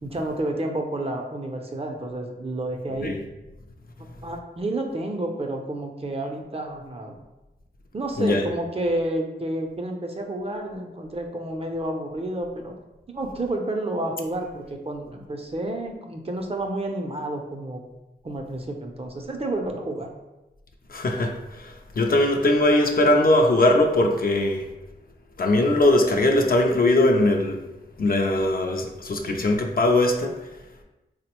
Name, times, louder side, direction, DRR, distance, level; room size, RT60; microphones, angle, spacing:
voice 1, 0.0-3.1 4.2-7.2 7.9-12.7 13.1-17.8 18.2-20.1, right 1 dB, 30° right, 3 dB, 0.5 m, -30 dB
voice 2, 20.9-24.7 25.4-27.6 28.0-30.3, left 1 dB, 55° left, 3 dB, 0.4 m, -20 dB
3.7 x 2.1 x 2.9 m, 1.0 s
cardioid pair, 50°, 19 cm